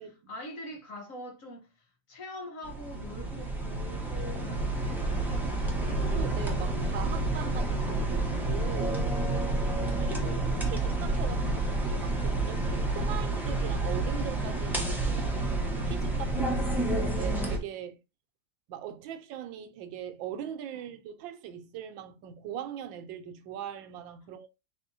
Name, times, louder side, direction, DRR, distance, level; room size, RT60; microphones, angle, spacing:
voice 1, 0.0-6.0 9.7-10.8, left 1 dB, 50° left, 1.2 m, -44 dB
ballroom and beyond, 2.6-17.6, right 2 dB, ahead, 0.4 m, -29 dB
voice 2, 6.1-9.1 10.1-10.4 10.7-18.0 18.7-24.5, right 9 dB, 90° right, 1.4 m, -40 dB
4.3 x 4.1 x 2.7 m
omnidirectional pair, 2.0 m